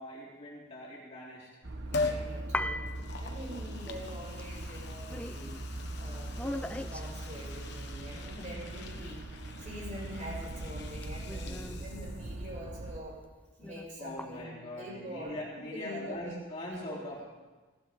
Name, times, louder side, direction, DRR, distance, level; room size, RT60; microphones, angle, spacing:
voice 1, 0.0-1.5 8.3-8.6 11.4-11.8 14.0-17.2, left 1 dB, 30° left, -6 dB, 3.5 m, -42 dB
sound 1, 1.6-13.0, right 1 dB, 55° right, 1.2 m, -41 dB
Liquid, 1.9-2.3 2.9-12.5 12.8-12.9, left 3 dB, 55° left, 1.3 m, -42 dB
voice 2, 1.9-5.6 5.9-9.2 9.6-13.2 13.6-16.3 16.7-17.1, equal, 35° right, -5 dB, 6.7 m, -44 dB
sound 2, 2.0-9.5 10.0-13.1 13.3-14.4, left 1 dB, 5° left, 0.4 m, -42 dB
19.5 x 17.0 x 3.8 m, 1.2 s
head